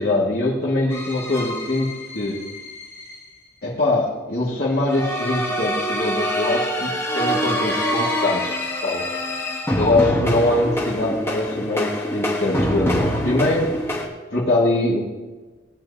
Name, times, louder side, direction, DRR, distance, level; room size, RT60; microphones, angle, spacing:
voice 1, 0.0-2.5 3.6-9.0 9.8-13.7 14.3-15.0, left 2 dB, 55° left, -8 dB, 2.0 m, -22 dB
sound 1, 0.9-3.2 4.9-14.1, equal, 15° left, 1.2 m, -25 dB
19.0 x 10.5 x 2.8 m, 1.3 s
head